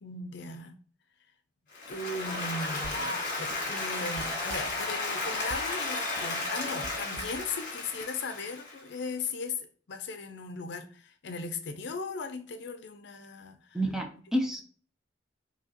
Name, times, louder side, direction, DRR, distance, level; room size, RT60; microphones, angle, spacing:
voice 1, 0.0-0.8 1.9-13.8, left 4 dB, 65° left, 0.6 m, -38 dB
Applause, 1.7-8.9, left 2 dB, 45° left, 1.9 m, -34 dB
sound 1, 2.8-3.2 3.5-5.0 5.3-5.8 6.2-7.7 8.0-8.1, right 3 dB, 70° right, 0.4 m, -45 dB
voice 2, 13.7-14.6, right 1 dB, 5° right, 0.6 m, -29 dB
4.8 x 2.8 x 2.9 m
head